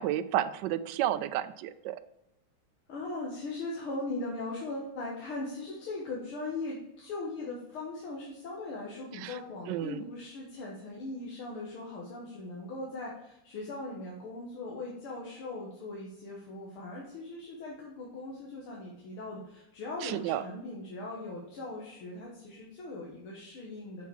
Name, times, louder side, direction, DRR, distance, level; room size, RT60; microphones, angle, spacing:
voice 1, 0.0-2.0 9.2-9.3 9.7-10.0 20.0-20.4, right 12 dB, 80° right, 11 dB, 1.0 m, -31 dB
voice 2, 2.9-24.1, left 2 dB, 75° left, -3 dB, 2.2 m, -39 dB
7.2 x 5.8 x 4.7 m, 0.86 s
omnidirectional pair, 2.4 m